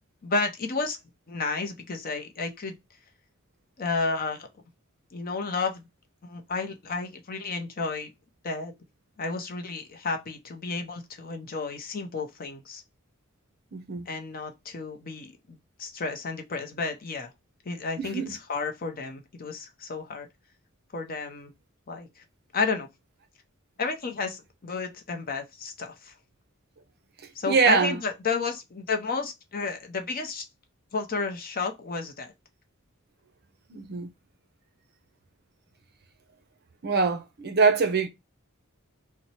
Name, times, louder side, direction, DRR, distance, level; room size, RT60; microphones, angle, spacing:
voice 1, 0.2-1.0 1.3-2.8 3.8-4.5 5.1-5.8 6.2-8.1 8.4-8.7 9.2-12.8 14.1-17.3 17.6-20.3 20.9-21.5 21.9-22.2 22.5-22.9 23.8-26.1 27.3-30.4 30.9-32.3, left 4 dB, 45° left, 0.7 m, -32 dB
voice 2, 13.7-14.1 18.0-18.3 27.5-27.9 33.7-34.1 36.8-38.1, right 4 dB, 50° right, 0.6 m, -23 dB
2.9 x 2.1 x 4.1 m
head